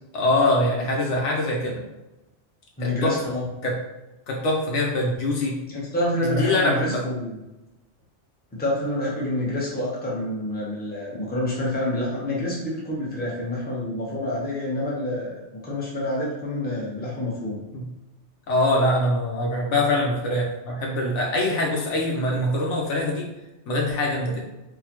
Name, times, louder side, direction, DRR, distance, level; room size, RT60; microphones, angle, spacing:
voice 1, 0.1-1.8 2.8-3.2 3.6-3.8 4.3-5.6 6.2-7.0 17.7-17.8 18.5-23.3 23.7-24.4, left 1 dB, 80° left, -1 dB, 1.1 m, -23 dB
voice 2, 2.8-3.5 5.7-7.4 8.5-17.6, left 1 dB, 10° left, -5 dB, 0.7 m, -28 dB
4.0 x 2.2 x 2.9 m, 0.99 s
omnidirectional pair, 1.2 m